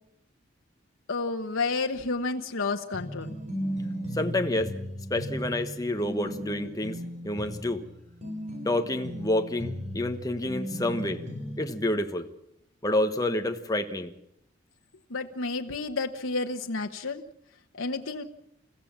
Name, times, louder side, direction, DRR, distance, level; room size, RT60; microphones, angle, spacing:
voice 1, 1.1-3.4 15.1-17.2 17.7-18.2, left 3 dB, 90° left, 4 dB, 1.1 m, -30 dB
sound 1, 2.9-11.8, equal, 35° right, 4.7 m, -36 dB
voice 2, 4.1-4.7 5.1-7.8 8.6-11.2 11.6-12.3 12.8-14.1, left 1 dB, 20° left, 6 dB, 1.3 m, -28 dB
29.5 x 15.5 x 7.3 m, 0.78 s
head